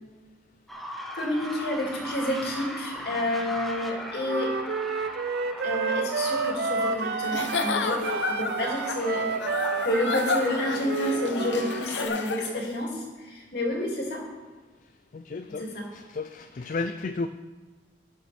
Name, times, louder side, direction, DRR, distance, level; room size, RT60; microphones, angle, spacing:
sound 1, 0.7-12.1, equal, ahead, 0.8 m, -39 dB
voice 1, 1.2-4.5 5.6-9.3 9.8-14.2 15.6-15.9, left 1 dB, 60° left, -2 dB, 2.4 m, -29 dB
Wind instrument woodwind instrument, 4.2-7.8 8.0-11.9, right 5 dB, 60° right, 0.5 m, -30 dB
Giggle / Chuckle chortle, 7.2-12.7, left 4 dB, 85° left, 0.8 m, -31 dB
voice 2, 15.1-15.7 15.9-17.3, left 3 dB, 45° left, 9 dB, 0.4 m, -33 dB
16.5 x 6.6 x 3.4 m, 1.4 s
head